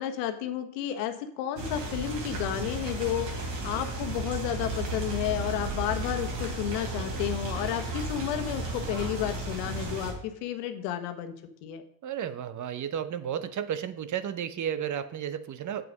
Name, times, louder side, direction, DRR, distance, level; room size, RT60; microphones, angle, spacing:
voice 1, 0.0-11.3 11.6-11.8, left 11 dB, 75° left, 7 dB, 1.4 m, -32 dB
sound 1, 1.6-10.1, right 2 dB, 85° right, 3.8 m, -34 dB
voice 2, 12.0-15.9, right 9 dB, 40° right, 13 dB, 0.9 m, -33 dB
8.0 x 7.6 x 5.2 m, 0.70 s
supercardioid pair, 85°, 48 cm